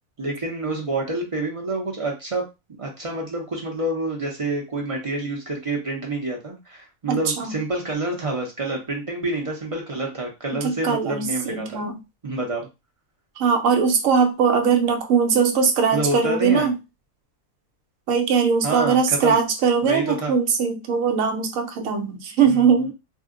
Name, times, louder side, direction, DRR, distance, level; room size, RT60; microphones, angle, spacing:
voice 1, 0.2-2.4 2.8-11.8 12.2-12.7 15.9-16.7 18.6-19.4 19.8-20.3 22.5-22.9, right 2 dB, 35° right, 0.5 m, -28 dB
voice 2, 7.1-7.6 10.6-11.9 13.4-16.8 18.1-22.9, right 6 dB, 70° right, 1.0 m, -20 dB
2.5 x 2.1 x 3.6 m
omnidirectional pair, 1.5 m